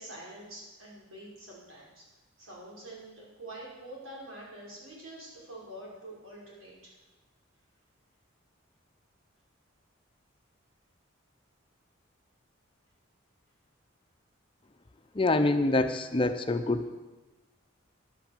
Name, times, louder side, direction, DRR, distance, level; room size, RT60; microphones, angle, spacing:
voice 1, 0.0-2.0 2.4-6.9, right 1 dB, 90° right, -5 dB, 5.3 m, -46 dB
voice 2, 15.2-16.9, left 2 dB, 25° left, 8 dB, 0.6 m, -26 dB
11.0 x 9.1 x 7.3 m, 1.1 s
head